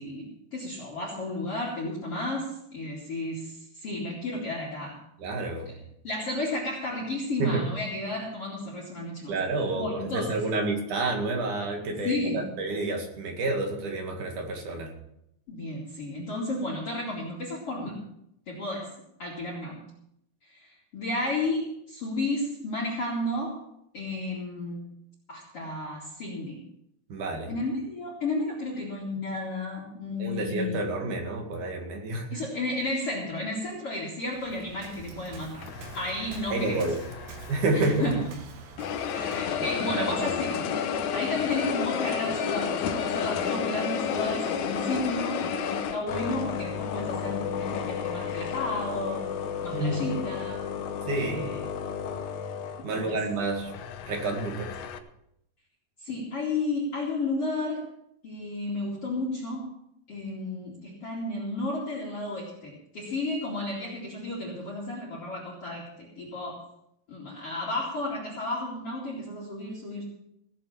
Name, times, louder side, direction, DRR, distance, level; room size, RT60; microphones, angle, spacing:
voice 1, 0.0-5.0 5.6-9.3 9.7-10.3 12.0-12.4 15.5-18.0 18.5-18.9 19.2-19.8 20.4-23.6 23.9-24.8 25.3-26.6 27.5-30.9 32.3-35.7 35.9-36.9 37.7-38.2 39.1-40.8 41.1-49.3 49.6-50.7 51.1-51.6 52.8-53.2 56.0-57.9 58.2-59.7 60.1-66.6 67.1-70.0, left 2 dB, 40° left, -3 dB, 3.2 m, -33 dB
voice 2, 5.2-5.7 7.4-7.6 9.3-14.9 27.1-27.5 30.2-32.3 36.5-37.0 37.5-38.1 39.1-39.3 39.6-40.3 49.7-50.0 51.1-51.5 52.8-53.7 54.1-54.7, right 2 dB, 55° right, 2 dB, 3.4 m, -29 dB
Waves surf, 34.3-39.6, right 3 dB, 80° right, 3.7 m, -44 dB
sound 1, 35.6-38.4 38.8-55.0, left 7 dB, 80° left, 1.7 m, -32 dB
17.0 x 7.7 x 7.2 m, 0.78 s
omnidirectional pair, 4.6 m